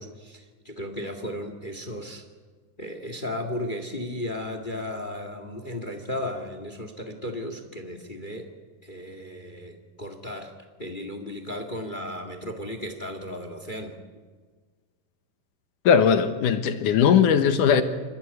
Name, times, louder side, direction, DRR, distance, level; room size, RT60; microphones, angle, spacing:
voice 1, 0.0-2.2 2.8-8.5 8.8-13.9, left 1 dB, 25° left, 1.0 m, -35 dB
voice 2, 15.9-17.8, left 7 dB, 65° left, 2.4 m, -19 dB
28.0 x 15.0 x 9.7 m
omnidirectional pair, 4.5 m